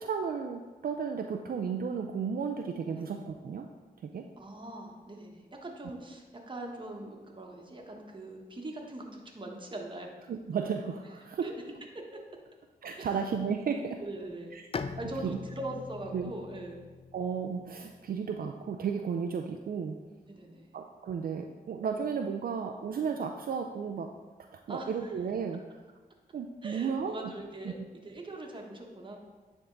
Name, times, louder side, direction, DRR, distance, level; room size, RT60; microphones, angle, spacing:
voice 1, 0.0-3.7 4.0-4.2 10.3-11.5 12.8-14.0 14.5-15.0 15.2-15.4 16.1-16.3 17.1-20.0 20.7-24.1 24.5-25.8 26.3-27.1 27.6-27.7, right 6 dB, 65° right, 4 dB, 0.4 m, -34 dB
voice 2, 4.4-10.1 11.4-11.5 13.0-13.1 14.0-14.6 15.0-16.9 20.3-20.7 24.7-25.1 26.6-27.8 28.0-29.2, right 2 dB, 30° right, 1 dB, 1.2 m, -42 dB
Bowed string instrument, 14.7-18.4, left 5 dB, 35° left, 0.4 m, -42 dB
9.5 x 3.6 x 3.9 m, 1.3 s
cardioid pair, 65°, 16 cm